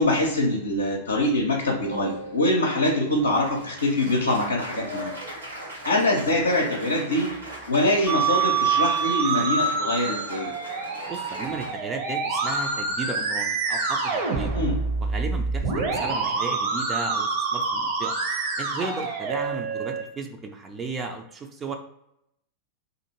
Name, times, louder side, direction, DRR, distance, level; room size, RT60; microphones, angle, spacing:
voice 1, 0.0-5.1 5.8-7.3 7.7-10.5 14.5-14.8, left 1 dB, 75° left, -1 dB, 0.5 m, -24 dB
Applause, 1.9-11.7, right 1 dB, 75° right, 1.1 m, -39 dB
Musical instrument, 8.1-20.0, right 4 dB, 45° right, 0.7 m, -26 dB
voice 2, 11.1-14.5 15.0-18.2 18.6-21.7, right 4 dB, 20° right, 4 dB, 0.4 m, -34 dB
2.6 x 2.5 x 2.8 m, 0.79 s
figure-of-eight pair, 90°, 0 cm